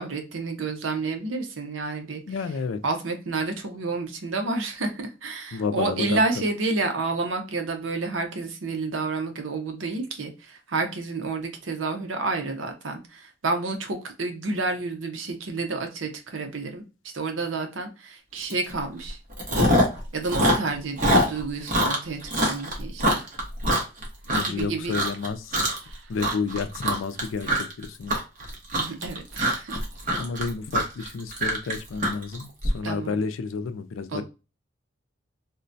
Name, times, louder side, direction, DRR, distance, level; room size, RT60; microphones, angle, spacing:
voice 1, 0.0-2.2 2.8-16.8 17.1-19.2 20.1-23.3 24.4-25.0 25.8-26.1 28.7-29.8 32.8-33.2 34.1-34.2, right 3 dB, 70° right, 0.7 m, -30 dB
voice 2, 2.3-2.8 5.5-6.4 24.4-25.7 26.1-28.2 30.2-34.2, left 5 dB, 75° left, 0.4 m, -31 dB
Chewing mastication, 18.5-18.7 19.0-20.0 20.2-24.6 24.9-25.3 25.5-25.9 26.2-32.7, equal, 45° right, 1.0 m, -24 dB
3.7 x 2.2 x 2.6 m
head